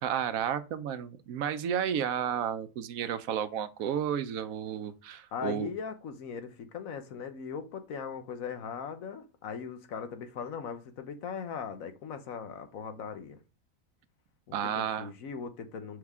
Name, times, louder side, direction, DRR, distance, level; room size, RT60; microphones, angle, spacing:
voice 1, 0.0-5.7 14.5-15.1, right 9 dB, 75° right, 1.1 m, -32 dB
voice 2, 5.3-13.4 14.5-16.0, left 6 dB, 75° left, 1.3 m, -39 dB
6.3 x 5.7 x 3.6 m
omnidirectional pair, 1.5 m